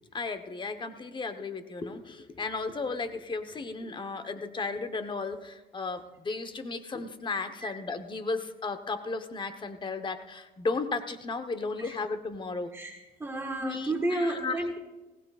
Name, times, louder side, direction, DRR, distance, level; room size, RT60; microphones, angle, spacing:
voice 1, 0.1-12.7 13.6-14.6, left 3 dB, 30° left, 8 dB, 1.1 m, -34 dB
voice 2, 12.7-14.8, right 1 dB, 15° right, 1 dB, 1.5 m, -32 dB
20.0 x 17.5 x 2.5 m, 1.1 s
cardioid pair, 110°, 17 cm